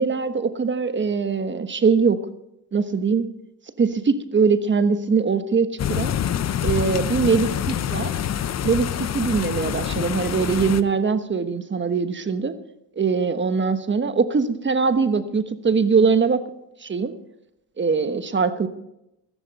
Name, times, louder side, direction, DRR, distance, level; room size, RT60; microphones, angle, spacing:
voice 1, 0.0-2.2 2.7-3.3 3.8-6.1 6.6-8.1 8.6-12.6 13.0-16.5 16.8-17.1 17.8-18.7, right 5 dB, 30° right, 11 dB, 1.2 m, -22 dB
sound 1, 5.8-10.8, left 10 dB, 45° left, 0.8 m, -26 dB
15.0 x 14.5 x 4.2 m, 0.85 s
cardioid pair, 85°, 36 cm